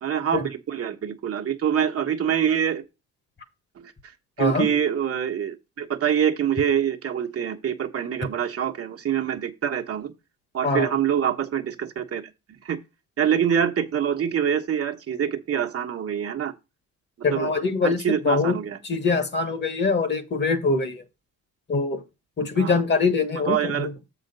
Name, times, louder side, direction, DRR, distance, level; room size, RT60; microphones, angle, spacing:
voice 1, 0.0-2.8 3.8-3.9 4.4-10.1 10.5-12.2 12.5-12.8 13.2-16.5 17.3-17.5 17.8-18.8 22.6-22.8 23.5-23.9, right 8 dB, 50° right, 1.2 m, -25 dB
voice 2, 17.2-18.5 18.8-21.0 21.7-22.0 22.4-23.9, left 4 dB, 35° left, 1.5 m, -23 dB
7.2 x 5.0 x 5.5 m
cardioid pair, 90°, 30 cm